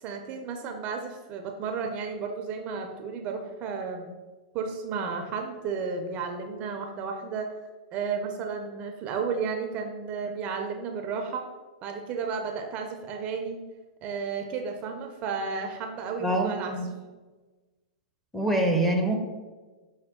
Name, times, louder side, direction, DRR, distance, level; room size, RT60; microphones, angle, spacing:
voice 1, 0.0-4.2 4.5-7.5 7.9-11.4 11.8-13.6 14.0-16.7, right 5 dB, 35° right, 4 dB, 0.5 m, -33 dB
voice 2, 16.2-16.9 18.3-19.2, right 1 dB, 5° left, 1 dB, 0.6 m, -25 dB
5.7 x 2.2 x 3.5 m, 1.3 s
hypercardioid pair, 125°, 4 cm